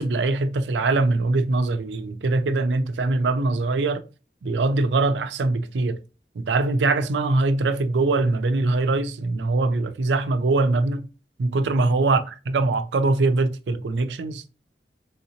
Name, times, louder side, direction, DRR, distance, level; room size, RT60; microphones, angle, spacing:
voice 1, 0.0-4.0 4.4-6.0 6.4-11.1 11.4-14.4, right 3 dB, 85° right, 0.4 m, -22 dB
3.4 x 2.7 x 2.8 m
head